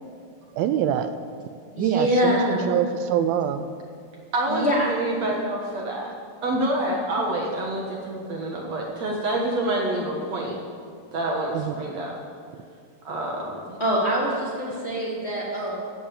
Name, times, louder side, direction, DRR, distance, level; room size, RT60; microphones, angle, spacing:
voice 1, 0.6-1.1 1.8-2.4 2.7-3.7 11.5-11.7, right 10 dB, 80° right, 10 dB, 2.4 m, -24 dB
voice 2, 1.7-2.7 4.5-4.9 13.8-15.7, equal, 20° left, -6 dB, 2.5 m, -24 dB
voice 3, 4.3-6.2 6.4-10.6 11.1-12.2 13.0-13.8, right 1 dB, 55° right, -1 dB, 2.3 m, -27 dB
14.5 x 8.8 x 8.6 m, 2.3 s
omnidirectional pair, 4.3 m